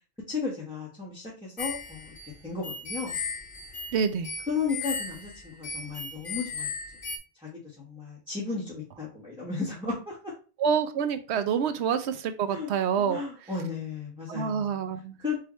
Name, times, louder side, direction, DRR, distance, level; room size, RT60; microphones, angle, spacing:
voice 1, 0.3-2.1 2.4-3.2 4.5-6.7 7.4-10.3 12.5-12.7 13.0-14.8 15.2-15.4, left 4 dB, 5° right, 1.2 m, -34 dB
sound 1, 1.6-7.2, left 5 dB, 55° left, 1.2 m, -36 dB
voice 2, 3.9-4.3 10.6-13.2 14.3-15.2, right 7 dB, 85° right, 0.9 m, -27 dB
4.8 x 2.6 x 4.3 m
omnidirectional pair, 1.1 m